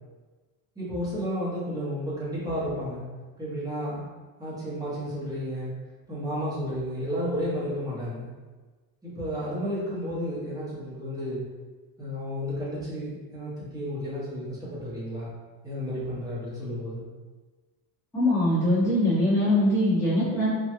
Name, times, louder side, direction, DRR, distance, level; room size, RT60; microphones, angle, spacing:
voice 1, 0.8-3.0 3.4-4.0 4.4-5.7 6.1-8.3 9.0-11.4 12.0-15.3 15.6-17.0, equal, 10° right, -9 dB, 0.7 m, -32 dB
voice 2, 18.1-20.5, left 1 dB, 5° left, -13 dB, 1.2 m, -22 dB
3.0 x 2.3 x 2.8 m, 1.3 s
cardioid pair, 175°, 40 cm